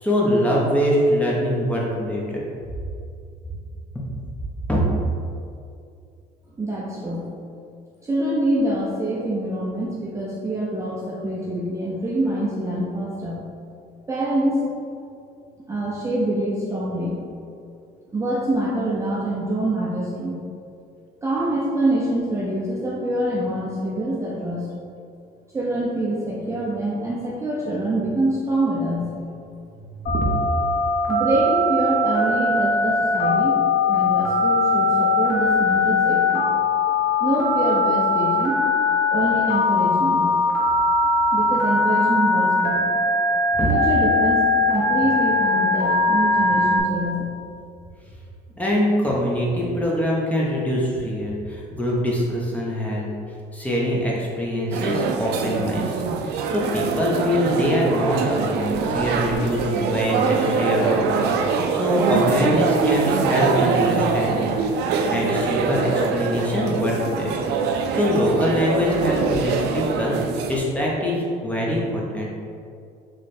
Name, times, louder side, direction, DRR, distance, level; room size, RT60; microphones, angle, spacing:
voice 1, 0.0-2.4 4.7-4.8 30.1-30.3 43.5-43.7 48.6-53.1 53.5-61.0 61.7-64.6 65.1-67.4 67.9-70.2 70.5-72.3, equal, 10° left, -4 dB, 0.9 m, -23 dB
voice 2, 6.6-7.3 8.0-13.4 14.1-14.7 15.7-17.2 18.1-20.4 21.2-24.7 25.5-29.1 29.8-29.9 31.1-33.6 33.9-36.4 37.2-38.6 39.1-40.3 41.3-43.0 43.7-47.2, right 1 dB, 15° right, -6 dB, 0.6 m, -25 dB
Telephone, 30.1-46.8, left 3 dB, 70° left, 1.0 m, -20 dB
sound 1, 54.7-70.6, right 5 dB, 80° right, 0.4 m, -23 dB
3.2 x 3.1 x 4.2 m, 2.4 s
cardioid pair, 110°, 17 cm